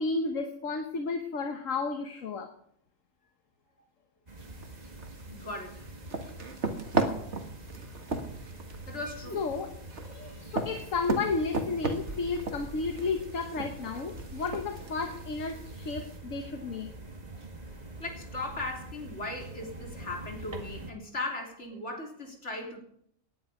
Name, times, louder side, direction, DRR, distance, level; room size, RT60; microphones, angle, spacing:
voice 1, 0.0-2.5 9.3-9.7 10.0-16.9, left 4 dB, 75° left, 6 dB, 1.7 m, -32 dB
sound 1, 4.3-20.9, right 2 dB, 30° right, 2.0 m, -45 dB
sound 2, 4.4-16.2, right 3 dB, 60° right, 2.1 m, -36 dB
voice 2, 5.3-5.9 8.9-9.4 18.0-22.8, left 2 dB, 60° left, 2 dB, 3.8 m, -38 dB
18.5 x 11.0 x 5.1 m, 0.67 s
omnidirectional pair, 1.4 m